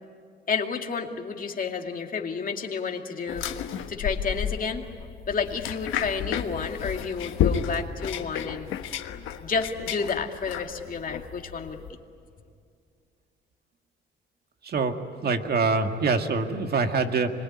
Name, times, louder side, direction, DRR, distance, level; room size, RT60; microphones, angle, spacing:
voice 1, 0.5-3.5 3.9-4.8 5.3-8.7 9.4-11.8, left 5 dB, 45° left, 3 dB, 2.4 m, -30 dB
sound 1, 3.3-11.9, left 9 dB, 90° left, 1.3 m, -32 dB
voice 2, 14.6-17.3, right 4 dB, 50° right, 6 dB, 2.0 m, -25 dB
26.0 x 21.5 x 10.0 m, 2.2 s
cardioid pair, 90°, 20 cm